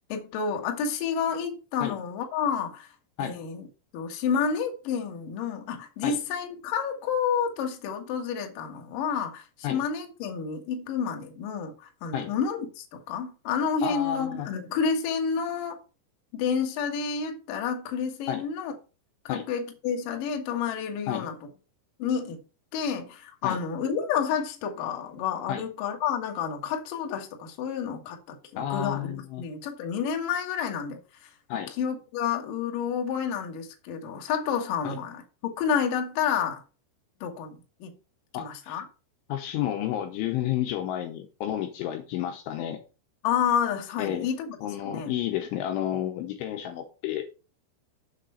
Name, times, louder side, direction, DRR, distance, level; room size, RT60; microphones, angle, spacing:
voice 1, 0.1-2.9 3.2-3.6 3.9-11.7 12.0-15.8 16.3-18.7 19.2-21.3 22.0-22.4 22.7-31.0 31.8-36.6 37.2-37.9 38.4-38.8 43.2-44.6 44.9-45.1, left 7 dB, 60° left, 2.4 m, -29 dB
voice 2, 13.8-14.5 18.3-18.4 19.3-19.4 21.1-21.3 23.4-23.6 25.5-25.6 28.6-29.5 31.5-31.7 34.8-35.0 38.3-38.8 39.3-42.8 44.0-44.3 44.6-47.3, left 11 dB, 80° left, 3.1 m, -31 dB
7.6 x 6.5 x 5.6 m
omnidirectional pair, 6.0 m